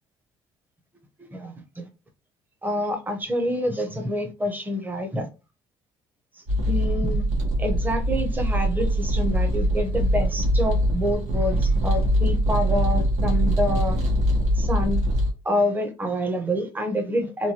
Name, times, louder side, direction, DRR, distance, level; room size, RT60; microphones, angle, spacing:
voice 1, 1.2-1.9 2.6-5.3 6.7-7.2 7.6-14.0 14.5-15.0 15.4-17.5, left 1 dB, 15° right, 0.7 m, -27 dB
sound 1, 6.5-15.3, right 1 dB, 80° right, 1.1 m, -22 dB
3.0 x 2.2 x 2.8 m
cardioid pair, 120°, 12 cm